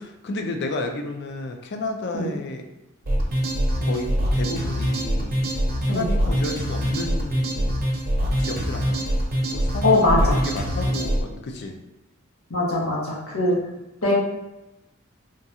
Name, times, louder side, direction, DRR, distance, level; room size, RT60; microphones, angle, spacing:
voice 1, 0.0-2.6 3.8-5.4 5.8-7.7 8.4-9.0 9.5-11.8, left 2 dB, 50° left, 4 dB, 0.4 m, -32 dB
sound 1, 3.0-11.2, equal, 45° right, 0.7 m, -24 dB
voice 2, 9.8-10.4 12.5-13.5 14.0-14.1, left 2 dB, 90° left, -5 dB, 1.3 m, -21 dB
3.8 x 2.3 x 2.8 m, 0.98 s
head